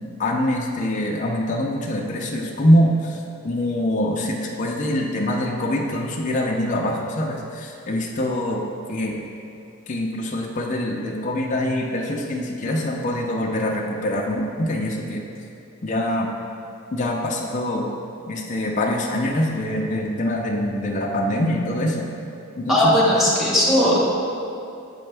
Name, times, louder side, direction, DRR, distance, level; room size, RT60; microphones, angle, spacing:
voice 1, 0.2-8.6 8.9-9.1 9.9-15.2 15.8-16.3 16.9-17.9 18.3-22.1 22.6-22.9, left 1 dB, 35° left, -1 dB, 0.4 m, -24 dB
voice 2, 22.7-24.0, equal, ahead, -7 dB, 1.1 m, -17 dB
7.6 x 4.3 x 3.3 m, 2.6 s
head